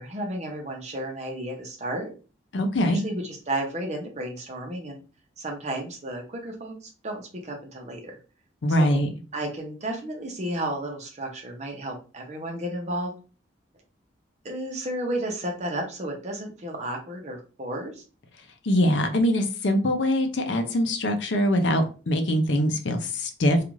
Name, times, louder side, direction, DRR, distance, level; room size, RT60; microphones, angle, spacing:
voice 1, 0.0-2.1 2.8-5.0 5.4-8.2 8.8-9.0 9.3-13.1 14.4-18.0, right 1 dB, 35° right, 1 dB, 0.7 m, -33 dB
voice 2, 2.5-3.0 8.6-9.1 18.6-23.6, equal, 70° left, 6 dB, 0.5 m, -23 dB
2.5 x 2.4 x 3.0 m, 0.34 s
head